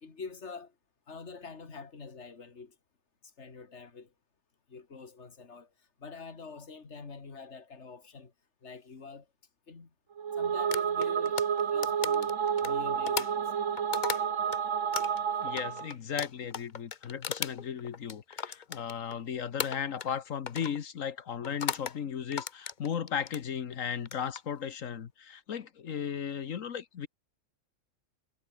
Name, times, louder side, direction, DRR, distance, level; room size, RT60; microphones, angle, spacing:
voice 1, 0.0-0.7 1.1-2.8 3.2-4.1 4.7-5.7 6.0-8.3 8.6-9.3 9.7-9.9 10.4-11.4 11.7-12.3 12.6-13.6, left 4 dB, 60° left, 2.6 m, -46 dB
sound 1, 10.2-15.9, right 7 dB, 70° right, 1.6 m, -30 dB
sound 2, 10.7-14.6 14.9-19.2 19.6-20.2 20.5-20.8 21.4-22.0 22.3-23.4 24.0-24.4, left 7 dB, 40° left, 0.9 m, -37 dB
voice 2, 15.4-27.1, left 7 dB, 80° left, 1.5 m, -36 dB
omnidirectional pair, 1.4 m